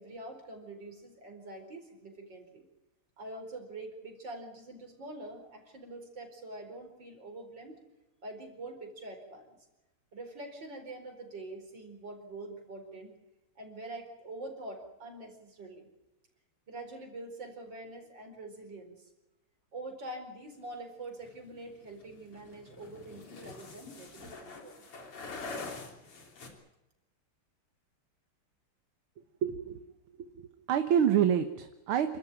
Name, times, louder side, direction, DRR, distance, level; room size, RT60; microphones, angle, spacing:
voice 1, 0.0-2.7 3.2-7.8 8.2-9.6 10.1-13.2 13.6-15.9 16.7-19.0 19.7-24.9, right 2 dB, 55° right, 4 dB, 5.2 m, -45 dB
sound 1, 21.2-26.5, left 3 dB, 85° left, 4.2 m, -45 dB
voice 2, 29.4-29.8 30.4-32.2, right 9 dB, 75° right, 8 dB, 2.0 m, -27 dB
28.5 x 13.5 x 9.2 m, 0.97 s
omnidirectional pair, 2.4 m